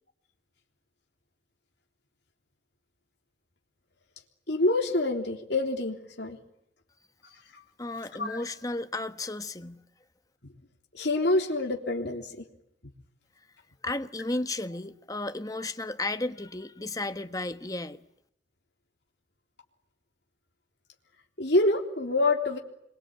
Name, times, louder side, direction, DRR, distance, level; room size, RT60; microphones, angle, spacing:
voice 1, 4.5-6.4 7.5-7.6 8.1-8.4 10.9-12.5 21.4-22.6, left 2 dB, 60° left, 3.5 m, -26 dB
voice 2, 7.8-9.8 13.8-18.0, left 2 dB, 20° left, 1.2 m, -33 dB
28.0 x 23.5 x 9.0 m
head